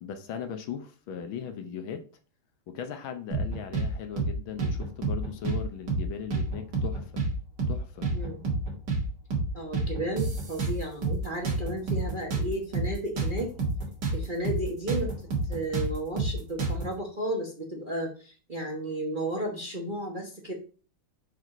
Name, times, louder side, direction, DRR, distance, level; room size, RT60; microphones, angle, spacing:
voice 1, 0.0-2.0 2.7-7.2 7.7-8.1, left 7 dB, 70° left, 1.6 m, -38 dB
sound 1, 3.3-3.9 4.2-4.3 4.6-5.6 5.9-6.0 6.3-7.3 7.6-7.8 8.0-9.0 9.3-9.5 9.7-11.2 11.4-14.2 14.4-14.6 14.9-16.9, right 3 dB, 50° right, 2.5 m, -28 dB
voice 2, 8.1-8.4 9.5-13.5 14.1-15.1 15.5-20.5, right 1 dB, 30° right, 1.1 m, -33 dB
6.1 x 4.8 x 5.3 m
omnidirectional pair, 2.4 m